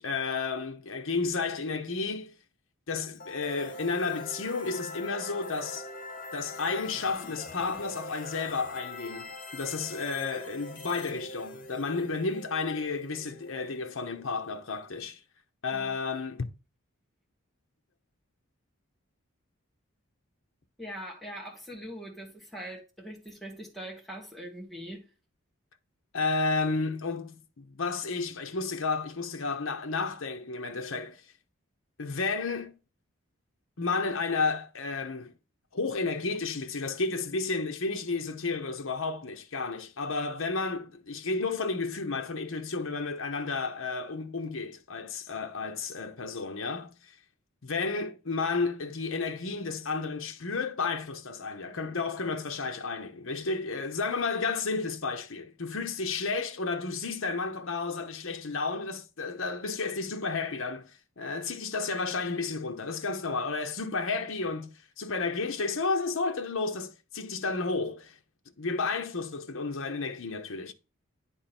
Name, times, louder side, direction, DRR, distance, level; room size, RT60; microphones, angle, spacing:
voice 1, 0.0-2.3 2.9-5.9 6.3-15.2 15.6-16.4 26.1-31.2 32.0-32.7 33.8-35.3 35.7-47.1 47.6-68.2 68.6-70.7, left 4 dB, 70° left, 0.9 m, -32 dB
sound 1, 3.2-15.0, left 2 dB, 40° left, 1.1 m, -43 dB
voice 2, 20.8-25.1, equal, ahead, 1.8 m, -42 dB
9.7 x 3.7 x 4.3 m
head